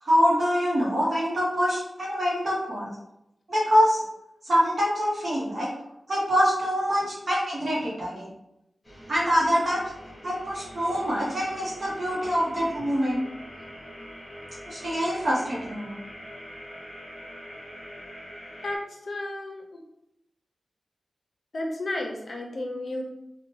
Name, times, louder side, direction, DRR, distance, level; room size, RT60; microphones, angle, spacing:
voice 1, 0.0-2.9 3.5-4.0 4.4-5.7 6.1-8.3 9.1-9.8 10.2-13.2 14.7-16.0, equal, 55° right, -6 dB, 0.8 m, -25 dB
sound 1, 8.8-18.8, equal, 25° left, 0.9 m, -43 dB
voice 2, 18.6-19.6 21.5-23.0, left 1 dB, 65° left, 2 dB, 0.5 m, -32 dB
2.7 x 2.1 x 3.0 m, 0.85 s
wide cardioid pair, 85°, 0 cm